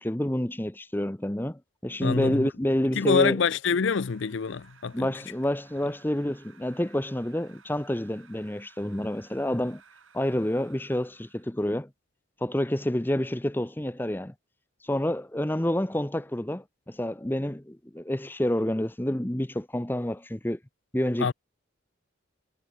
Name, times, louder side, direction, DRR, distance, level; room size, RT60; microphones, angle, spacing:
voice 1, 0.0-3.4 4.9-9.8 10.1-11.9 12.4-14.3 14.8-20.6 20.9-21.3, left 1 dB, 10° left, 0.7 m, -28 dB
voice 2, 2.0-2.5 2.9-5.1 21.2-21.3, left 5 dB, 70° left, 0.5 m, -26 dB
sound 1, 4.0-11.6, right 6 dB, 80° right, 4.8 m, -57 dB
head